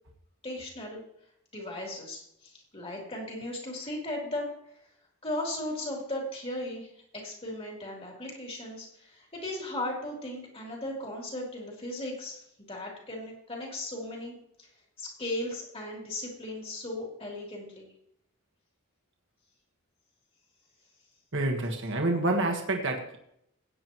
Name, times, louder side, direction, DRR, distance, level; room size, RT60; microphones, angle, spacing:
voice 1, 0.4-1.0 1.5-4.5 5.2-14.7 15.0-17.9, left 1 dB, 25° left, -2 dB, 3.3 m, -37 dB
voice 2, 21.3-23.2, right 2 dB, 55° right, 1 dB, 1.6 m, -28 dB
16.5 x 9.7 x 3.1 m, 0.73 s
head